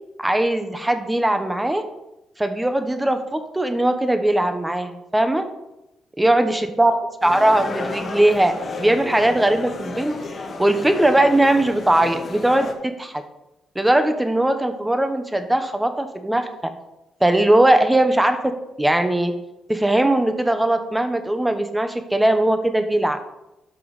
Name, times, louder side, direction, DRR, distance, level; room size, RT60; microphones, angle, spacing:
voice 1, 0.2-1.8 2.4-5.4 6.2-10.2 10.6-13.2 13.7-16.5 17.2-18.4 18.8-19.3 19.7-23.2, right 1 dB, 10° right, 8 dB, 1.1 m, -19 dB
sound 1, 7.2-12.7, left 3 dB, 40° left, 1.6 m, -32 dB
12.0 x 5.6 x 4.2 m, 0.93 s
cardioid pair, 90°, 0 cm